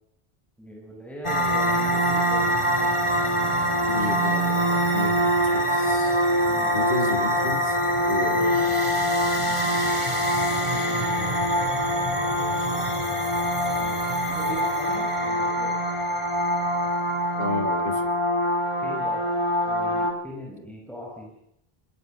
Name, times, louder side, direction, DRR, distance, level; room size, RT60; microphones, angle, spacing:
voice 1, 0.6-3.0 6.5-7.2 8.3-8.8 9.3-10.5 10.7-11.4 13.8-15.8 18.8-19.3 19.7-21.4, equal, ahead, -2 dB, 5.8 m, -41 dB
sound 1, 1.2-20.1, equal, 30° left, 3.2 m, -24 dB
voice 2, 3.9-6.3 6.7-7.8 8.1-8.6 12.3-13.1 17.4-18.0, left 3 dB, 60° left, 7 dB, 2.6 m, -33 dB
26.0 x 19.5 x 6.6 m, 0.79 s
omnidirectional pair, 1.0 m